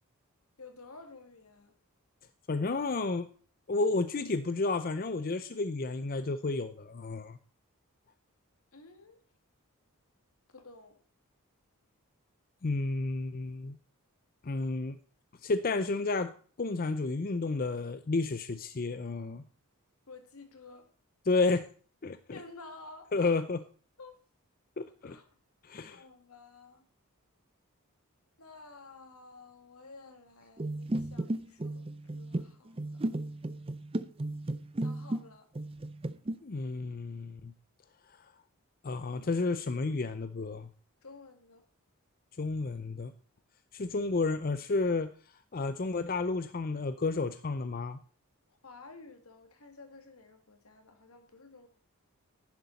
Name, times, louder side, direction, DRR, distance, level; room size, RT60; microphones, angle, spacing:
voice 1, 0.6-1.7 8.7-9.2 10.5-11.0 20.1-20.9 22.3-23.4 24.0-24.2 25.0-25.3 25.9-26.9 28.4-33.0 34.8-35.5 41.0-41.6 48.5-51.7, left 3 dB, 80° left, 7 dB, 2.2 m, -52 dB
voice 2, 2.5-3.3 3.7-7.4 12.6-13.8 14.4-15.0 15.4-16.3 16.6-19.4 21.3-21.7 22.0-22.4 23.1-23.6 24.8-25.2 25.6-26.0 36.4-37.5 38.8-40.7 42.4-43.1 43.7-45.1 45.5-48.0, left 3 dB, 40° left, 12 dB, 0.5 m, -31 dB
sound 1, 30.6-35.3 35.5-36.4, right 1 dB, 25° right, 0.5 m, -35 dB
11.0 x 10.5 x 4.1 m, 0.42 s
head